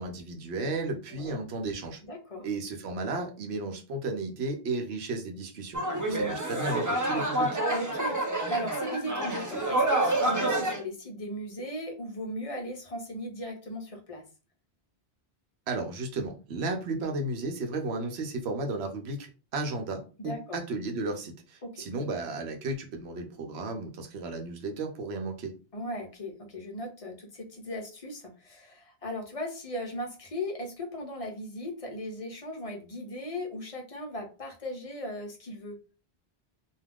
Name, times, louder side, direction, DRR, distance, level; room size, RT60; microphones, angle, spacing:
voice 1, 0.0-2.0 2.4-7.6 15.7-25.5, right 2 dB, 80° right, 4 dB, 0.9 m, -34 dB
voice 2, 2.0-2.5 6.0-6.4 7.7-14.2 20.2-20.6 21.6-21.8 25.7-35.8, equal, 40° left, 1 dB, 0.6 m, -37 dB
sound 1, 5.7-10.8, right 1 dB, 25° right, 0.4 m, -28 dB
2.3 x 2.3 x 3.4 m, 0.34 s
omnidirectional pair, 1.1 m